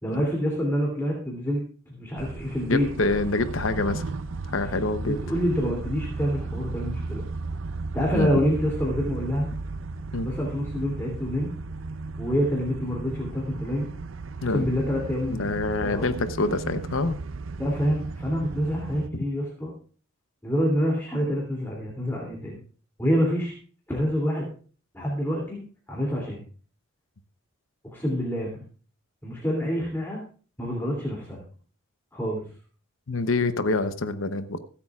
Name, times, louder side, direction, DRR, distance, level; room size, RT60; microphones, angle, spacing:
voice 1, 0.0-2.9 5.0-7.2 7.9-9.5 10.2-11.5 12.2-13.9 14.4-16.1 17.6-19.7 20.4-22.6 23.0-23.5 23.9-24.5 24.9-25.6 25.9-26.4 27.8-28.6 29.2-30.2 30.6-31.4 32.1-32.4, equal, 10° left, -2 dB, 2.9 m, -27 dB
sound 1, 2.2-19.1, right 3 dB, 70° right, 0.5 m, -35 dB
voice 2, 2.7-4.0 4.5-5.2 8.1-8.3 10.1-10.3 14.4-14.6 15.3-17.2 33.1-34.6, left 3 dB, 75° left, 10 dB, 0.9 m, -26 dB
24.5 x 8.6 x 2.4 m, 0.41 s
head